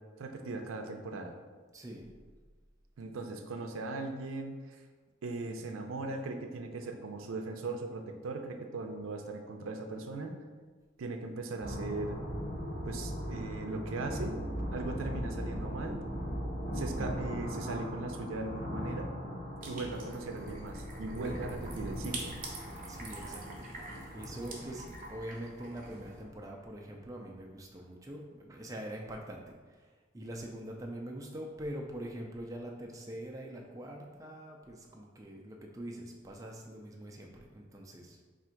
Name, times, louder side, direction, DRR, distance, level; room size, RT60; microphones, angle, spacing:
voice 1, 0.2-1.4 3.0-4.8 5.2-10.4 11.0-12.2 12.8-14.4 14.7-16.0 16.7-19.1 19.6-22.4, right 3 dB, 90° right, 5 dB, 0.4 m, -39 dB
voice 2, 1.7-2.2 14.8-15.2 22.9-38.3, right 1 dB, 15° right, 0 dB, 0.3 m, -44 dB
sound 1, 11.6-26.9, equal, 60° left, 1.2 m, -39 dB
sound 2, 19.6-26.2, right 2 dB, 45° right, 0.7 m, -46 dB
3.6 x 2.5 x 4.4 m, 1.4 s
head